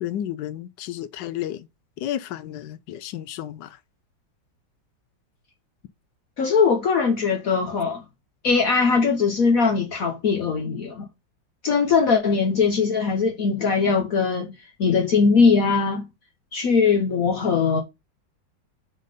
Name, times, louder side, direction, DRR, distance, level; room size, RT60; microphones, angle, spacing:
voice 1, 0.0-1.7 2.0-3.8, left 11 dB, 75° left, 1.2 m, -32 dB
voice 2, 6.4-8.0 8.4-11.0 11.6-14.5 14.8-16.1 16.5-17.8, left 5 dB, 55° left, 1.2 m, -20 dB
6.5 x 3.7 x 5.1 m
omnidirectional pair, 2.0 m